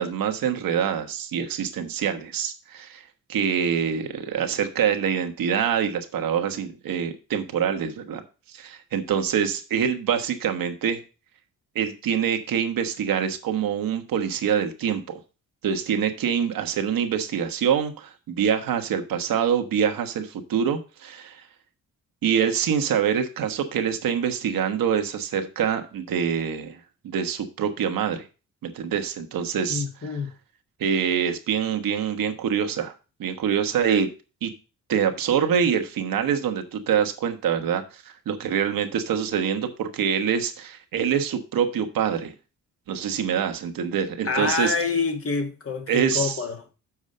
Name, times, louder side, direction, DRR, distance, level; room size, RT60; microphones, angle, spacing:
voice 1, 0.0-3.0 3.3-8.2 8.5-11.0 11.7-15.2 15.6-21.4 22.2-26.8 27.0-28.2 28.6-29.8 30.8-32.9 33.2-34.1 34.4-34.5 34.9-42.3 42.9-44.7 45.9-46.4, right 8 dB, 80° right, 1.3 m, -25 dB
voice 2, 29.7-30.3 44.2-46.7, left 4 dB, 40° left, 1.7 m, -27 dB
7.2 x 4.8 x 6.6 m
cardioid pair, 100°, 34 cm